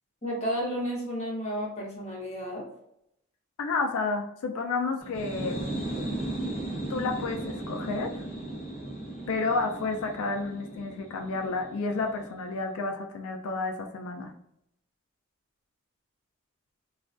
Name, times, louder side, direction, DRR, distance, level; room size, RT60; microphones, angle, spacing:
voice 1, 0.2-2.6, equal, 30° left, -3 dB, 0.7 m, -32 dB
voice 2, 3.6-5.6 6.9-8.2 9.3-14.3, left 3 dB, 90° left, 3 dB, 0.4 m, -31 dB
sound 1, 5.0-12.5, right 1 dB, 10° right, 0.9 m, -36 dB
2.4 x 2.2 x 2.4 m, 0.77 s
head